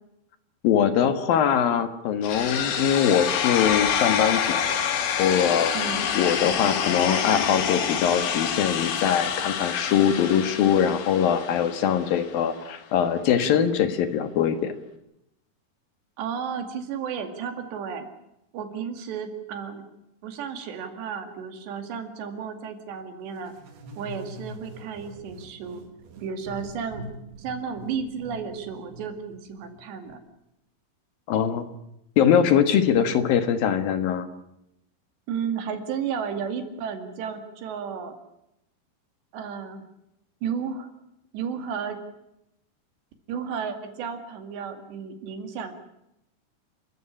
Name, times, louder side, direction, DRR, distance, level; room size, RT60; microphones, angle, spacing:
voice 1, 0.6-4.8 5.2-5.7 6.1-14.7 31.3-31.7 32.2-34.3, left 8 dB, 65° left, 10 dB, 3.0 m, -22 dB
sound 1, 2.2-12.2, left 8 dB, 85° left, 4.2 m, -27 dB
voice 2, 5.7-6.1 16.2-18.1 18.5-19.8 20.2-23.5 24.0-25.8 26.2-27.0 27.4-30.2 35.3-38.2 39.3-39.8 40.4-40.9 41.3-42.0 43.3-45.7, right 7 dB, 90° right, 7 dB, 4.5 m, -33 dB
sound 2, 23.4-30.2, equal, 70° right, 4.0 m, -44 dB
30.0 x 14.0 x 10.0 m, 0.83 s
omnidirectional pair, 4.8 m